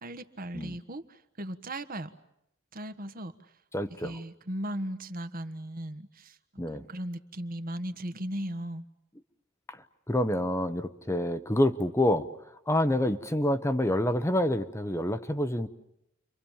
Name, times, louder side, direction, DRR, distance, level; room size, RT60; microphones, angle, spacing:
voice 1, 0.0-2.1 2.7-3.3 3.9-6.4 6.7-8.8, right 1 dB, 45° right, 10 dB, 1.4 m, -37 dB
voice 2, 3.7-4.2 6.6-6.8 9.7-12.3 12.7-15.7, left 1 dB, 15° left, 10 dB, 0.9 m, -27 dB
30.0 x 25.0 x 7.3 m, 0.82 s
head